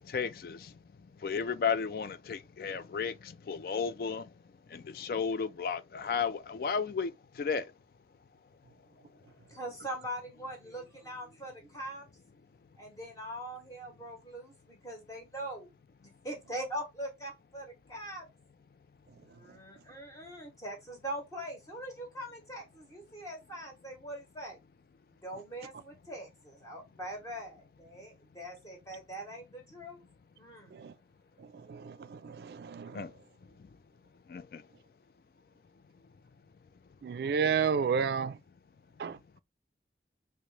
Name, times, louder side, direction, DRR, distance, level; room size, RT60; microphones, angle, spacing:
voice 1, 0.1-0.6 1.2-4.2 4.7-7.1 7.4-7.6 32.9-33.1 34.3-34.6, left 6 dB, 55° left, 0.3 m, -33 dB
voice 2, 9.5-12.1 12.8-15.7 16.2-18.2 19.3-24.6 25.2-30.0 30.4-30.8, right 1 dB, 20° left, 0.9 m, -42 dB
voice 3, 31.7-33.0 37.0-38.4 39.0-39.2, right 6 dB, 65° right, 0.3 m, -31 dB
3.0 x 2.8 x 3.2 m
head